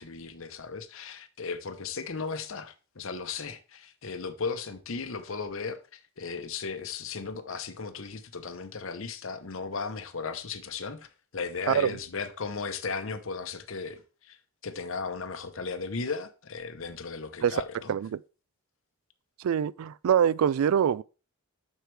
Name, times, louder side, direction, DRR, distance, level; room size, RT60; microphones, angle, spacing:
voice 1, 0.0-17.9, left 4 dB, 65° left, 0.8 m, -36 dB
voice 2, 11.7-12.0 17.4-17.6 17.9-18.2 19.4-21.0, right 8 dB, 75° right, 0.3 m, -24 dB
7.7 x 6.4 x 3.3 m
head